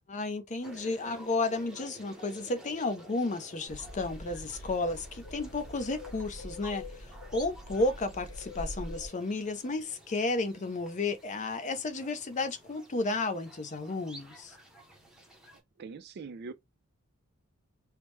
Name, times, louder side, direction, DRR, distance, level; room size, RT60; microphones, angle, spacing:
voice 1, 0.1-14.6, left 2 dB, 35° left, 0.5 m, -33 dB
sound 1, 0.6-15.6, right 1 dB, 5° right, 0.7 m, -53 dB
sound 2, 3.7-9.1, left 1 dB, 75° left, 0.9 m, -44 dB
voice 2, 15.8-16.5, right 4 dB, 50° right, 0.4 m, -42 dB
3.2 x 2.1 x 3.1 m
head